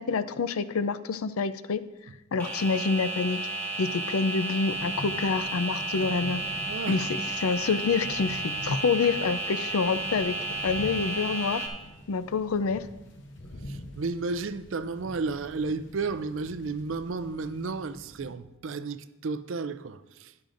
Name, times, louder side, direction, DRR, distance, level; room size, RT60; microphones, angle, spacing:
voice 1, 0.0-1.8 2.3-3.4 3.8-6.4 6.9-10.4 10.6-11.6 12.1-12.8, left 4 dB, 90° left, 0.5 m, -27 dB
sound 1, 2.4-11.7, right 2 dB, 10° left, 1.6 m, -33 dB
sound 2, 4.7-18.3, equal, 55° left, 0.9 m, -44 dB
voice 2, 6.7-7.0 13.7-20.3, right 4 dB, 65° right, 0.5 m, -33 dB
12.5 x 10.5 x 2.6 m
head